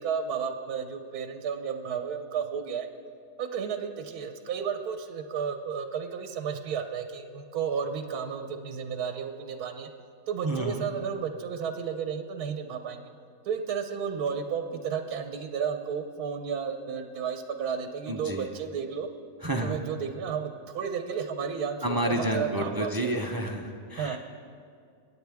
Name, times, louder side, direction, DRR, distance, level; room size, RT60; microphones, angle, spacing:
voice 1, 0.0-2.9 3.4-9.9 10.3-13.0 13.4-19.1 19.6-22.9 23.9-24.2, right 6 dB, 85° right, 7 dB, 1.3 m, -32 dB
voice 2, 10.4-10.8 18.1-18.5 19.4-19.8 21.8-24.2, right 1 dB, 35° right, 2 dB, 0.3 m, -30 dB
22.0 x 9.3 x 3.5 m, 2.3 s
omnidirectional pair, 1.6 m